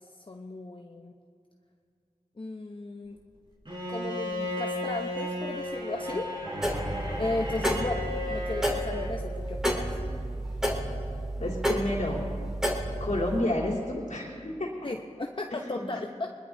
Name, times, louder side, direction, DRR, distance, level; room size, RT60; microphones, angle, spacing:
voice 1, 0.1-1.1 2.4-3.2 3.9-6.9 7.2-10.0 14.8-16.3, left 2 dB, 40° left, 2 dB, 0.9 m, -35 dB
Bowed string instrument, 3.7-9.2, left 1 dB, 40° right, 4.1 m, -34 dB
sound 1, 6.6-13.4, right 1 dB, 5° right, 2.7 m, -31 dB
voice 2, 11.4-12.2 13.0-14.7 15.5-15.8, left 1 dB, 75° left, -4 dB, 3.4 m, -30 dB
23.5 x 21.0 x 2.7 m, 2.3 s
wide cardioid pair, 55°, 13 cm